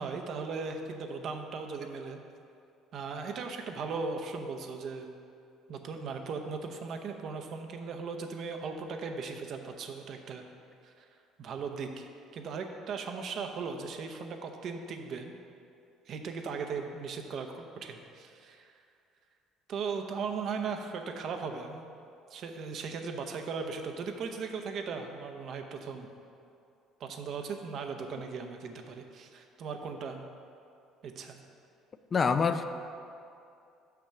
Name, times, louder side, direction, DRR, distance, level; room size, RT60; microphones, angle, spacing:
voice 1, 0.0-2.2 2.9-5.1 5.7-10.4 10.8-11.1 11.4-15.3 16.1-18.7 19.7-21.9 22.3-26.1 27.0-30.3 31.0-31.4, right 5 dB, 60° right, 5 dB, 0.8 m, -38 dB
voice 2, 32.1-32.6, left 5 dB, 40° left, 9 dB, 0.4 m, -25 dB
6.3 x 5.8 x 5.8 m, 2.5 s
hypercardioid pair, 65°, 0 cm